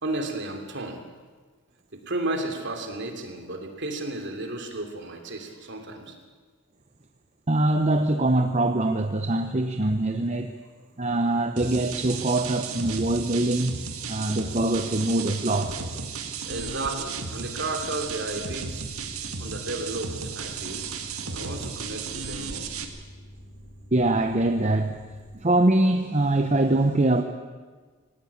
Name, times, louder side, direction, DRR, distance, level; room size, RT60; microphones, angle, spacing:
voice 1, 0.0-1.0 1.9-6.1 16.4-18.8 19.4-20.8 21.3-22.7, right 2 dB, 50° right, 4 dB, 3.1 m, -33 dB
voice 2, 7.5-10.5 11.0-13.8 14.1-15.8 23.9-25.0 25.4-27.2, right 2 dB, 30° right, 6 dB, 0.8 m, -23 dB
sound 1, 11.6-22.9, right 5 dB, 75° right, 1.9 m, -34 dB
sound 2, 17.4-25.6, equal, 45° left, 5.4 m, -47 dB
19.0 x 18.0 x 8.7 m, 1.4 s
head